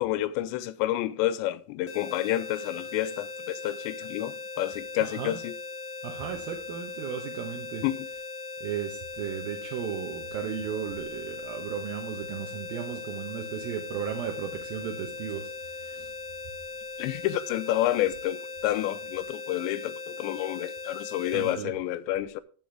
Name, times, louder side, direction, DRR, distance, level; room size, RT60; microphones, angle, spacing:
voice 1, 0.0-5.6 7.8-8.0 17.0-22.4, left 14 dB, 85° left, 2.8 m, -29 dB
sound 1, 1.9-21.6, left 4 dB, 30° left, 3.0 m, -39 dB
voice 2, 5.0-5.4 6.0-7.9 8.6-16.1 21.3-21.8, right 9 dB, 70° right, 2.3 m, -35 dB
15.0 x 7.0 x 3.4 m
omnidirectional pair, 5.2 m